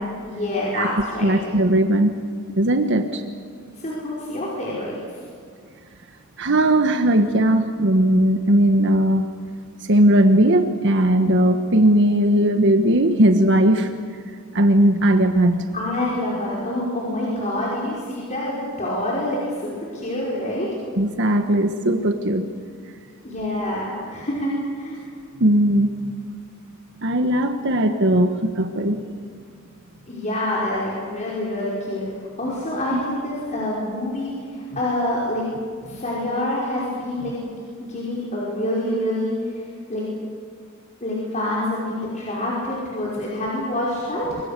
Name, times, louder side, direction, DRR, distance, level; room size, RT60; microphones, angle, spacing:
voice 1, 0.2-1.3 3.8-4.9 15.7-20.7 23.2-25.0 30.1-32.1 32.4-35.4 35.8-37.5 37.9-39.6 39.9-40.1 41.0-44.4, left 1 dB, 35° left, -6 dB, 5.3 m, -26 dB
voice 2, 1.2-2.2 2.6-3.2 6.4-9.3 9.8-13.9 14.5-15.7 21.0-22.4 25.4-25.9 27.0-29.0 32.9-33.0, right 1 dB, 55° right, 6 dB, 1.3 m, -18 dB
28.0 x 23.5 x 6.8 m, 2.2 s
head